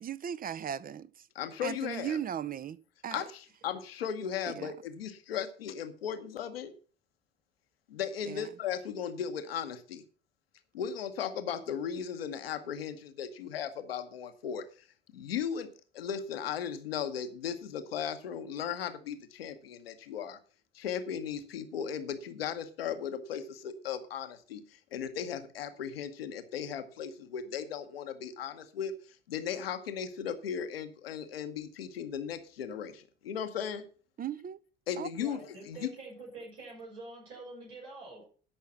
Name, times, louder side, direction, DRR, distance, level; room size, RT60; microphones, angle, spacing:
voice 1, 0.0-1.3 1.6-2.8 3.0-3.2 4.5-4.7 8.2-8.5 34.2-34.6 35.0-35.1, right 9 dB, 30° right, 0.6 m, -37 dB
voice 2, 1.3-2.2 3.1-6.7 7.9-10.0 10.7-14.6 15.1-15.7 15.9-20.4 20.7-33.8 34.9-35.4 35.7-35.9, left 8 dB, 80° left, 1.0 m, -37 dB
voice 3, 35.2-38.2, right 2 dB, 75° right, 6.7 m, -46 dB
13.0 x 5.6 x 5.8 m
figure-of-eight pair, 55°, 29 cm